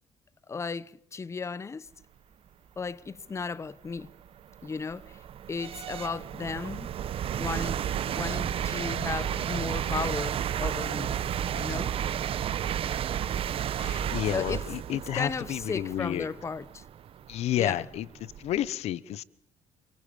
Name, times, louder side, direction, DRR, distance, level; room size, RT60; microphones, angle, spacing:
voice 1, 0.5-1.9 2.8-4.1 4.6-5.2 5.5-6.9 7.4-7.8 8.1-11.2 11.5-11.9 14.3-14.6 14.9-16.8 17.6-17.8, left 5 dB, 25° left, 1.0 m, -35 dB
sound 1, 3.2-3.3 3.9-18.7, right 9 dB, 60° right, 1.1 m, -32 dB
voice 2, 13.7-16.3 17.3-19.2, left 12 dB, 75° left, 1.1 m, -31 dB
28.0 x 24.0 x 7.0 m
cardioid pair, 115°, 11 cm